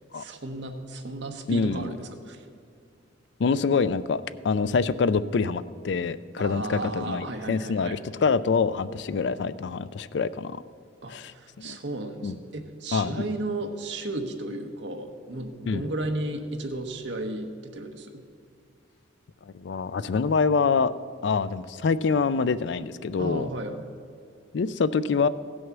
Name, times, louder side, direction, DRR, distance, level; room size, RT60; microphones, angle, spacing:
voice 1, 0.1-2.4 6.4-8.0 11.0-18.2 23.2-23.8, right 2 dB, 65° right, 5 dB, 1.1 m, -34 dB
voice 2, 1.5-1.9 3.4-10.6 11.1-11.8 12.2-12.3 12.9-13.3 15.7-15.8 19.5-20.9 21.2-23.5 24.5-25.3, left 5 dB, 65° left, 16 dB, 0.4 m, -25 dB
16.0 x 6.3 x 6.0 m, 2.4 s
head